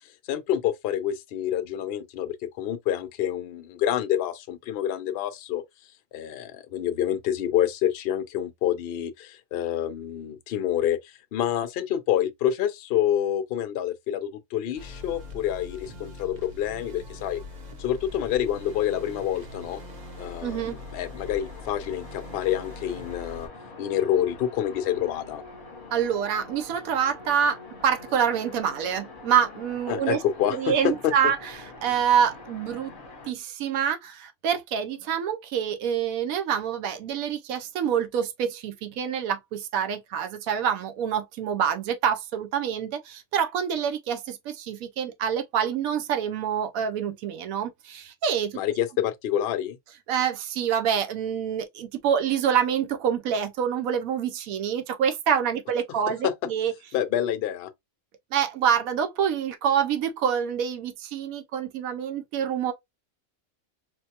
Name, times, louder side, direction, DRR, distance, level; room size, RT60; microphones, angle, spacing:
voice 1, 0.3-5.6 6.1-17.4 17.8-19.8 20.2-23.5 23.8-25.4 29.9-31.1 48.5-49.8 56.2-56.3 56.9-57.7, left 10 dB, 65° left, 0.6 m, -27 dB
sound 1, 14.7-23.5, left 2 dB, 40° right, 0.7 m, -42 dB
sound 2, 17.7-33.3, left 3 dB, 45° left, 1.0 m, -45 dB
voice 2, 20.4-20.8 25.9-30.2 30.5-31.5 31.8-32.9 33.3-48.6 50.1-56.7 58.3-62.7, right 8 dB, 85° right, 1.1 m, -26 dB
4.4 x 2.0 x 2.8 m
omnidirectional pair, 1.4 m